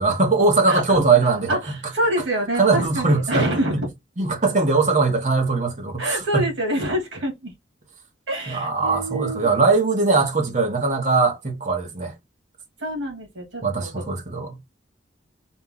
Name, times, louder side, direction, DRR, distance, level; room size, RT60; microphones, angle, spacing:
voice 1, 0.0-1.5 2.6-3.5 4.2-6.5 8.5-12.1 13.6-14.6, right 3 dB, 40° right, 1.0 m, -20 dB
voice 2, 0.7-3.9 6.0-7.5 8.3-9.5 12.8-14.0, right 1 dB, 85° right, 2.4 m, -26 dB
4.3 x 2.3 x 3.8 m
head